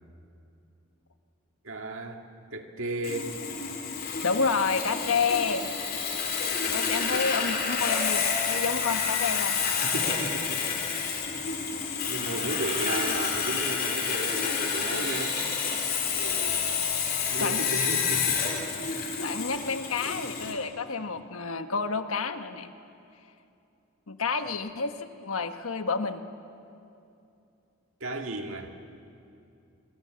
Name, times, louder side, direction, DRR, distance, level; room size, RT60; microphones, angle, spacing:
voice 1, 1.6-2.2 2.5-3.4 4.6-4.7 6.5-7.3 9.8-11.8 12.1-15.4 16.1-16.7 17.3-18.7 20.1-20.2 28.0-28.7, right 2 dB, 65° right, 4 dB, 2.1 m, -35 dB
Sawing, 3.0-20.5, left 6 dB, 45° left, 3.6 m, -29 dB
voice 2, 4.2-5.7 6.7-9.6 17.4-17.7 18.8-18.9 19.2-22.7 24.1-26.3, left 5 dB, 75° left, 8 dB, 1.3 m, -29 dB
26.0 x 24.5 x 7.7 m, 2.6 s
head